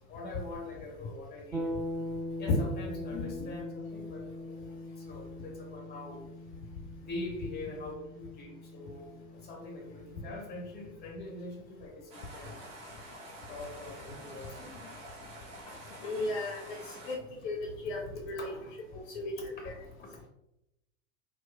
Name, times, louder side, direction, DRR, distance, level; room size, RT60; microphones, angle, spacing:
voice 1, 0.1-1.7 2.4-6.2 7.0-9.1 9.4-12.6 13.5-14.6 18.4-18.6 19.6-20.3, left 2 dB, 25° left, 1 dB, 0.7 m, -43 dB
sound 1, 1.5-11.3, left 1 dB, 20° right, 1.1 m, -41 dB
voice 2, 3.1-3.5 14.6-14.8 16.0-16.6 17.1-17.2 17.4-17.6 17.8-18.0 18.3-18.5 19.1-19.7, left 2 dB, 55° left, 0 dB, 0.5 m, -33 dB
sound 2, 12.1-17.2, right 1 dB, 65° right, 0.8 m, -48 dB
2.8 x 2.1 x 2.3 m, 0.87 s
figure-of-eight pair, 75°, 39 cm